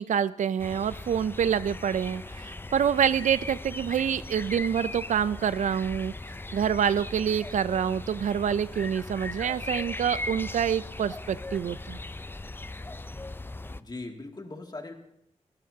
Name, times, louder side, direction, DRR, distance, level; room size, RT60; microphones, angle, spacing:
voice 1, 0.0-6.1 6.5-12.0, right 8 dB, 75° right, 16 dB, 0.4 m, -27 dB
sound 1, 0.6-13.8, left 2 dB, 15° left, 0.5 m, -39 dB
voice 2, 13.7-14.9, left 2 dB, 35° left, 2 dB, 2.4 m, -40 dB
22.5 x 14.0 x 2.8 m, 0.76 s
cardioid pair, 50°, 13 cm